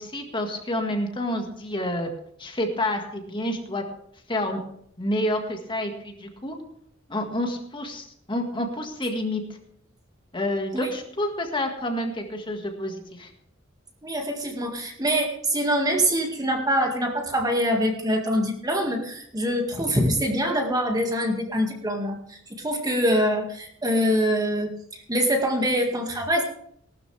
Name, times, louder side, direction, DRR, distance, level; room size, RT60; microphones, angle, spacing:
voice 1, 0.0-2.1 2.4-3.8 4.3-4.6 5.0-6.5 7.1-9.4 10.3-13.3, left 1 dB, 25° left, 3 dB, 1.8 m, -28 dB
voice 2, 14.0-26.4, equal, 20° right, 2 dB, 2.0 m, -24 dB
18.5 x 12.5 x 3.4 m, 0.67 s
head